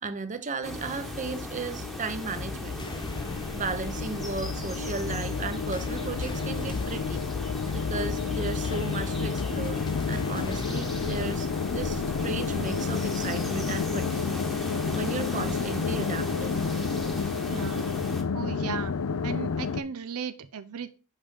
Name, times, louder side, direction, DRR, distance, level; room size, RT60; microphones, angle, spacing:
voice 1, 0.0-2.8 3.5-7.2 7.7-9.8 10.1-14.3 14.9-16.7, right 4 dB, 35° right, 0.7 m, -35 dB
sound 1, 0.6-19.8, left 5 dB, 75° left, 0.5 m, -31 dB
sound 2, 0.6-18.2, equal, ahead, 1.1 m, -39 dB
sound 3, 2.6-12.8, left 2 dB, 20° left, 0.5 m, -42 dB
voice 2, 17.5-17.8 18.3-18.9 19.2-20.9, right 6 dB, 90° right, 0.6 m, -36 dB
5.4 x 5.1 x 5.4 m
head